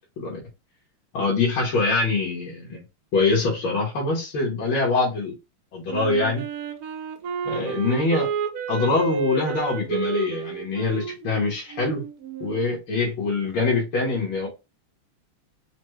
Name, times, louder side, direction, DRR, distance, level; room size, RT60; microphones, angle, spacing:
voice 1, 1.1-2.8 3.1-5.3 5.7-6.4 7.4-8.3 8.7-12.0 12.4-14.5, left 3 dB, 70° left, -3 dB, 2.2 m, -24 dB
Wind instrument woodwind instrument, 5.9-12.7, right 5 dB, 70° right, 0.8 m, -31 dB
5.1 x 2.3 x 3.1 m, 0.26 s
omnidirectional pair, 2.4 m